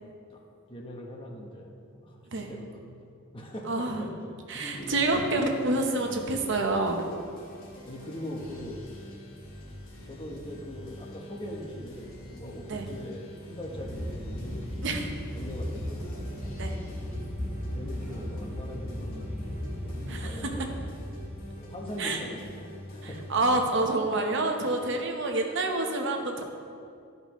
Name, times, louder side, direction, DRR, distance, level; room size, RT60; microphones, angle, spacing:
voice 1, 0.0-0.4 0.7-3.1 3.3-5.3 7.8-8.8 10.0-16.1 16.7-16.9 17.7-20.6 21.6-23.2 24.7-24.9, equal, 25° left, -1 dB, 1.0 m, -41 dB
voice 2, 3.7-4.0 4.5-7.0 12.7-12.8 14.8-15.1 16.6-16.8 20.1-20.3 22.0-22.2 23.3-26.4, right 2 dB, 60° right, 3 dB, 0.9 m, -27 dB
sound 1, 4.7-23.7, equal, 85° left, 2.0 m, -45 dB
sound 2, 13.7-21.3, equal, 10° right, 1.7 m, -36 dB
13.0 x 5.4 x 3.1 m, 2.4 s
head